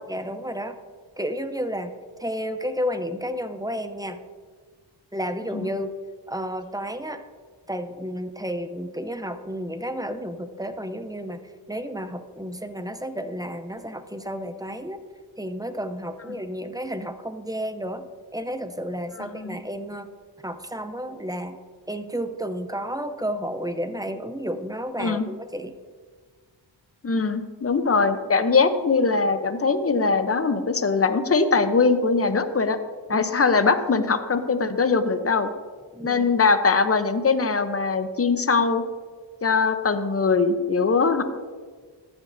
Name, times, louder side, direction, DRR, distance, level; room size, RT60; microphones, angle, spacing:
voice 1, 0.1-0.8 1.2-1.9 2.2-4.2 5.1-5.9 6.3-7.2 7.7-11.4 11.7-15.0 15.4-18.1 18.3-20.1 20.4-21.6 21.9-25.8 33.1-33.3 35.9-36.3, equal, 10° right, 9 dB, 0.6 m, -31 dB
voice 2, 19.2-19.6 25.0-25.2 27.0-32.8 33.1-35.5 36.0-38.8 39.4-41.2, left 4 dB, 30° left, 9 dB, 0.8 m, -21 dB
14.0 x 8.1 x 2.7 m, 1.5 s
cardioid pair, 65°, 47 cm